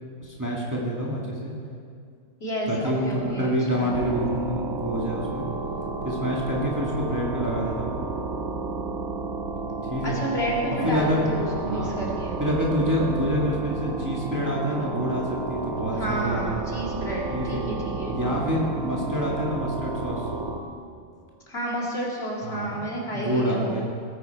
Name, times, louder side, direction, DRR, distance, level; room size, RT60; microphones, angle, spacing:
voice 1, 0.2-1.5 2.7-5.5 6.0-7.9 9.9-10.2 10.8-11.3 11.6-12.0 12.4-16.6 17.3-17.6 18.1-20.3 22.4-23.9, equal, 15° right, -3 dB, 1.7 m, -27 dB
voice 2, 2.4-4.0 10.0-12.4 15.9-18.2 21.5-23.8, right 1 dB, 50° left, -4 dB, 2.7 m, -31 dB
sound 1, 3.9-20.6, right 3 dB, 85° right, 1.8 m, -31 dB
19.0 x 9.3 x 4.6 m, 2.2 s
omnidirectional pair, 1.4 m